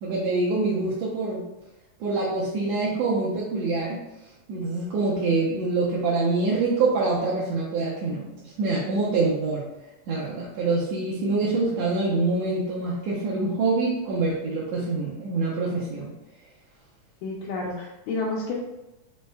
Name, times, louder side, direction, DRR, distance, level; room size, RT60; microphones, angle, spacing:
voice 1, 0.0-1.4 2.0-4.0 4.5-9.6 10.1-16.1, right 3 dB, 75° right, -7 dB, 1.8 m, -25 dB
voice 2, 17.2-18.5, left 3 dB, 85° left, -5 dB, 2.1 m, -30 dB
5.5 x 3.2 x 2.2 m, 0.95 s
omnidirectional pair, 3.4 m